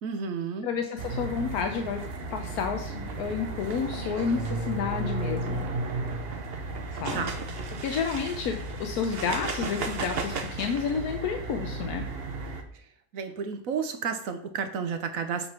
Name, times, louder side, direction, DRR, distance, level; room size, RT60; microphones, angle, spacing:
voice 1, 0.0-0.7 7.1-7.4 13.1-15.5, right 6 dB, 65° right, 8 dB, 1.3 m, -31 dB
voice 2, 0.6-2.0 2.3-5.7 6.9-7.2 7.8-12.0, left 6 dB, 85° left, 5 dB, 1.2 m, -30 dB
sound 1, 1.0-12.6, right 3 dB, 45° right, 1.0 m, -34 dB
7.6 x 4.0 x 5.9 m, 0.64 s
omnidirectional pair, 1.5 m